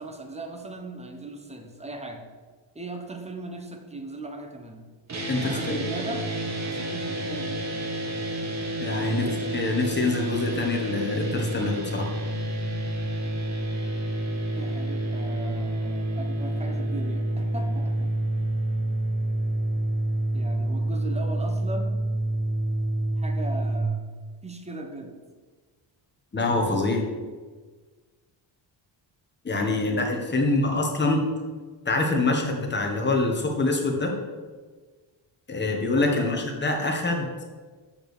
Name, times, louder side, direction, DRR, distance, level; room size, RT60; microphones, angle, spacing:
voice 1, 0.0-2.3 2.7-4.9 5.4-6.3 6.7-7.6 9.0-9.5 14.5-18.1 20.3-22.0 23.2-24.0 24.4-25.2 29.5-31.2 36.1-36.4, right 2 dB, 15° right, 4 dB, 1.1 m, -38 dB
sound 1, 5.1-23.8, right 1 dB, 35° right, 1.4 m, -28 dB
voice 2, 5.3-5.8 8.8-9.2 9.5-12.1 26.3-27.1 29.4-31.2 31.8-34.1 35.5-37.3, left 2 dB, 20° left, 1 dB, 1.5 m, -25 dB
6.6 x 5.7 x 6.7 m, 1.4 s
cardioid pair, 135°, 47 cm